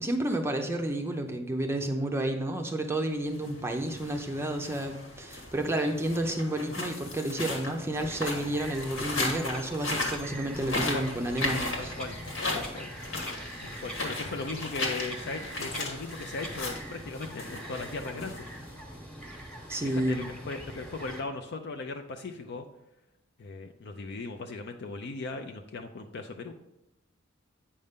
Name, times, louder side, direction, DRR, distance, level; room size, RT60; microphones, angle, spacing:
voice 1, 0.0-11.9 19.7-20.3, right 1 dB, 10° right, 3 dB, 0.5 m, -31 dB
sound 1, 3.2-18.9, left 2 dB, 80° left, 1.7 m, -36 dB
Bird vocalization bird call bird song, 7.9-21.2, right 1 dB, 5° left, 1.0 m, -43 dB
voice 2, 11.7-12.2 12.5-12.9 13.6-18.5 19.8-22.7 23.4-26.5, left 3 dB, 55° left, 5 dB, 0.5 m, -38 dB
8.6 x 5.3 x 3.6 m, 0.89 s
head